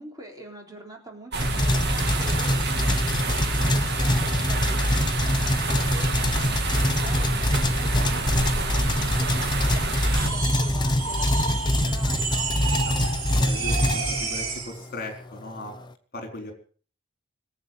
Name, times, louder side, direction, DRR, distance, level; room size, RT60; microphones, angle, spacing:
voice 1, 0.0-12.5, right 1 dB, 15° right, 1 dB, 3.7 m, -44 dB
sound 1, 1.3-10.3, right 3 dB, 50° right, 2.1 m, -29 dB
sound 2, 1.4-14.6, left 1 dB, 20° left, 1.0 m, -24 dB
sound 3, 10.0-14.8, right 4 dB, 85° right, 6.2 m, -30 dB
voice 2, 12.7-13.0 13.3-15.7 16.1-16.5, left 1 dB, 45° left, 5 dB, 4.1 m, -38 dB
21.0 x 8.3 x 7.7 m, 0.43 s
head